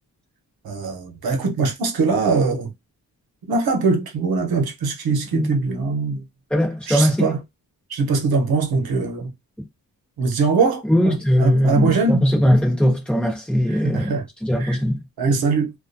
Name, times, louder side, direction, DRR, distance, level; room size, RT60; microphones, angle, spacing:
voice 1, 0.6-2.7 3.5-6.2 6.9-7.4 7.9-9.3 10.2-12.2 13.8-14.2 14.6-14.8 15.2-15.7, right 4 dB, 90° right, 0.8 m, -22 dB
voice 2, 6.5-7.3 10.8-15.0, equal, 5° left, 0.9 m, -20 dB
2.4 x 2.1 x 2.5 m
wide cardioid pair, 130°, 36 cm